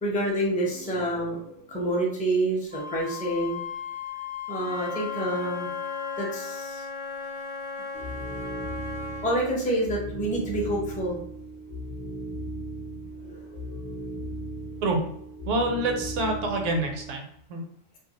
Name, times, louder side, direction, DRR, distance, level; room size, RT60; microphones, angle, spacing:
voice 1, 0.0-3.6 4.5-5.7 6.2-6.8 9.2-11.2 13.2-13.8, right 1 dB, 10° left, -3 dB, 0.4 m, -28 dB
Wind instrument woodwind instrument, 2.7-6.4, left 7 dB, 50° right, 0.5 m, -37 dB
Wind instrument woodwind instrument 2, 4.5-9.3, left 4 dB, 75° left, 0.9 m, -36 dB
sound 1, 7.9-17.2, right 1 dB, 45° left, 0.7 m, -37 dB
voice 2, 15.5-17.2 17.5-17.6, right 2 dB, 80° right, 3 dB, 1.0 m, -26 dB
2.5 x 2.3 x 2.8 m, 0.72 s
omnidirectional pair, 1.3 m